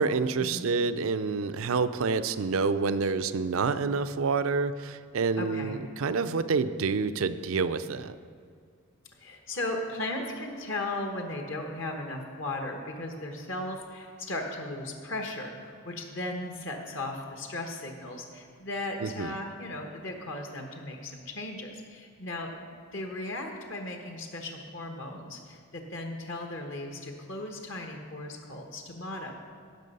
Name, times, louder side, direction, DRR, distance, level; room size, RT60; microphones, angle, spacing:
voice 1, 0.0-8.2 19.0-19.3, right 4 dB, 75° right, 12 dB, 0.5 m, -28 dB
voice 2, 5.4-5.8 9.2-29.4, left 2 dB, 60° left, 3 dB, 1.1 m, -36 dB
16.0 x 6.1 x 5.4 m, 2.2 s
head